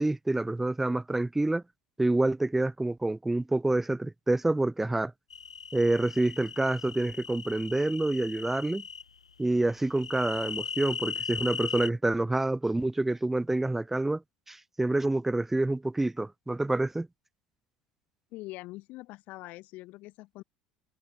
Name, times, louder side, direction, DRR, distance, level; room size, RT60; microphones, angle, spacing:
voice 1, 0.0-1.6 2.0-5.1 5.7-8.8 9.4-14.2 14.5-17.1, right 2 dB, 10° right, 0.3 m, -27 dB
sound 1, 5.3-9.0 10.0-11.9, left 6 dB, 90° left, 0.4 m, -38 dB
voice 2, 18.3-20.4, left 20 dB, 55° left, 4.0 m, -43 dB
open air
figure-of-eight pair, 70°, 3 cm